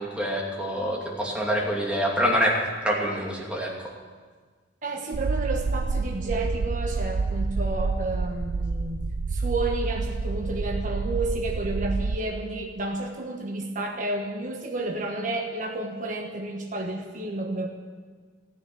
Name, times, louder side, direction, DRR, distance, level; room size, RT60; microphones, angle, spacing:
voice 1, 0.0-2.5 2.8-3.7, equal, 5° right, -2 dB, 2.7 m, -26 dB
voice 2, 4.8-17.7, right 2 dB, 45° right, 1 dB, 1.3 m, -31 dB
sound 1, 5.1-12.2, right 4 dB, 75° right, 0.5 m, -28 dB
15.0 x 10.5 x 8.6 m, 1.5 s
head